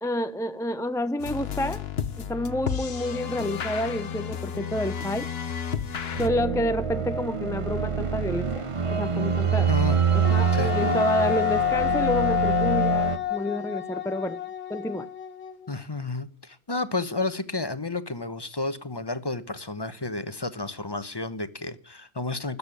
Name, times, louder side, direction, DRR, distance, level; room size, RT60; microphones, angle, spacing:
voice 1, 0.0-1.9 2.2-5.3 6.2-9.7 10.1-14.4 14.7-15.1, left 1 dB, 5° left, 0.3 m, -29 dB
sound 1, 1.2-6.3, left 7 dB, 65° left, 1.3 m, -32 dB
sound 2, 6.1-13.2, right 6 dB, 30° right, 0.9 m, -25 dB
Wind instrument woodwind instrument, 10.2-15.7, left 13 dB, 85° left, 2.2 m, -28 dB
voice 2, 15.7-22.6, left 3 dB, 25° left, 1.0 m, -31 dB
13.5 x 8.7 x 9.9 m
omnidirectional pair, 1.1 m